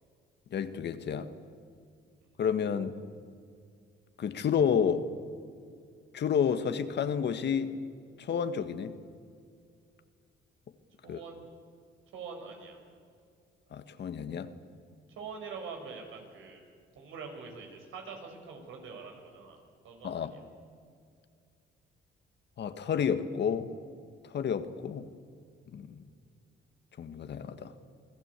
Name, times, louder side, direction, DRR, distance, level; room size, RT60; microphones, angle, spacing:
voice 1, 0.5-1.3 2.4-3.0 4.2-5.1 6.1-7.8 8.2-9.0 11.1-11.2 13.7-14.5 20.0-20.3 22.6-23.7 24.3-25.1 25.7-26.0 27.0-27.7, left 7 dB, 60° left, 10 dB, 1.6 m, -30 dB
voice 2, 11.0-11.4 12.1-12.8 15.2-16.6 17.0-20.4, right 5 dB, 85° right, 3 dB, 5.5 m, -44 dB
28.0 x 18.5 x 8.3 m, 2.3 s
cardioid pair, 90°, 20 cm